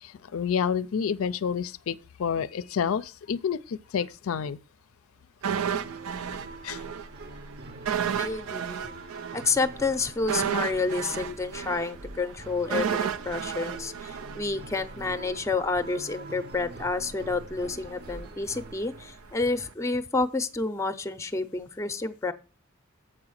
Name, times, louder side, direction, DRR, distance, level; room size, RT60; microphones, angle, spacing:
voice 1, 0.0-4.6 6.6-6.8 11.2-11.3, left 7 dB, 70° left, 0.4 m, -29 dB
sound 1, 5.4-19.3, right 2 dB, 45° right, 0.8 m, -44 dB
sound 2, 5.4-7.1 7.3-7.5 7.9-14.9 15.2-15.4, right 8 dB, 90° right, 0.5 m, -31 dB
voice 2, 8.2-8.9 9.3-22.3, left 3 dB, 15° left, 0.5 m, -29 dB
7.6 x 4.9 x 6.3 m
head